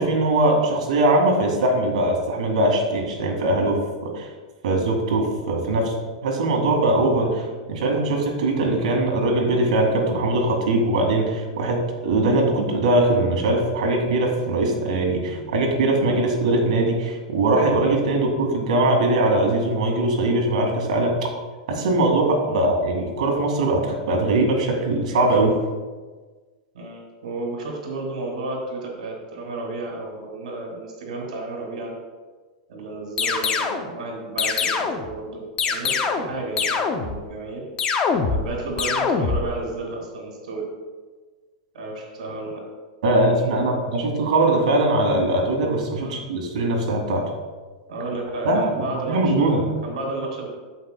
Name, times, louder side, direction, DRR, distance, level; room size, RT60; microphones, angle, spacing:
voice 1, 0.0-4.3 4.6-21.3 21.7-25.6 43.0-47.3 48.4-48.7 49.1-49.7, right 2 dB, 70° right, 1 dB, 1.9 m, -21 dB
voice 2, 26.7-31.9 32.7-37.6 38.3-40.7 41.7-42.6 43.1-43.8 46.0-46.2 47.9-50.5, right 2 dB, 90° right, -1 dB, 2.0 m, -32 dB
sound 1, 33.2-33.9 34.4-35.1 35.6-36.3 36.6-37.2 37.8-38.5 38.8-39.5, left 5 dB, 20° left, 0.4 m, -23 dB
15.5 x 5.5 x 2.2 m, 1.4 s
supercardioid pair, 170°, 4 cm